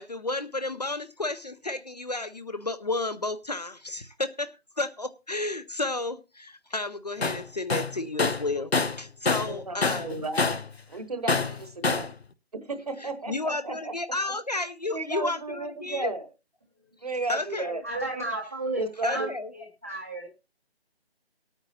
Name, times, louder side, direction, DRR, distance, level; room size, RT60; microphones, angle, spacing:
voice 1, 0.0-10.2 13.0-16.1 17.3-17.8 19.0-19.5, left 2 dB, 40° left, 0.6 m, -32 dB
Tools, 7.2-7.4 7.7-9.6 9.8-10.7 11.3-12.1, left 4 dB, 80° left, 0.8 m, -26 dB
voice 2, 9.4-10.6 10.9-12.1 12.6-13.9 14.9-16.3 17.0-17.8 18.8-19.3, right 3 dB, 40° right, 1.2 m, -34 dB
voice 3, 17.8-20.3, right 2 dB, 15° right, 0.7 m, -33 dB
23.0 x 8.9 x 2.7 m
figure-of-eight pair, 155°, 31 cm